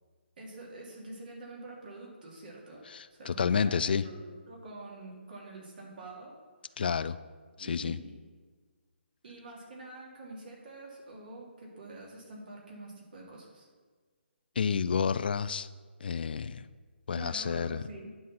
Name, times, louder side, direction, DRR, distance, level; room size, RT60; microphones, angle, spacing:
voice 1, 0.4-2.8 3.1-6.3 6.7-6.8 7.6-8.1 9.2-13.7 17.1-18.1, right 2 dB, 50° right, -3 dB, 2.7 m, -46 dB
voice 2, 2.9-4.1 6.8-7.2 7.6-8.0 14.6-15.7 16.0-16.7 17.1-17.8, left 6 dB, 55° left, 14 dB, 0.3 m, -30 dB
9.7 x 4.3 x 7.2 m, 1.5 s
figure-of-eight pair, 145°, 6 cm